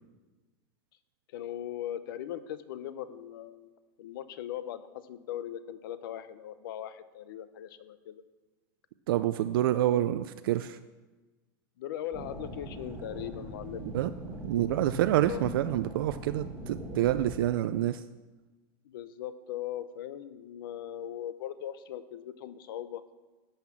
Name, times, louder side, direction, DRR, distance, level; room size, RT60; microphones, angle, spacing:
voice 1, 1.3-3.7 4.0-8.2 11.8-13.8 14.5-14.8 15.3-15.4 18.8-23.0, left 11 dB, 65° left, 14 dB, 0.7 m, -39 dB
voice 2, 9.1-10.8 13.8-14.1 14.4-18.0, right 13 dB, 70° right, 10 dB, 0.4 m, -27 dB
sound 1, 12.1-17.4, right 1 dB, 15° right, 1.7 m, -41 dB
12.0 x 5.8 x 7.3 m, 1.2 s
supercardioid pair, 180°, 12 cm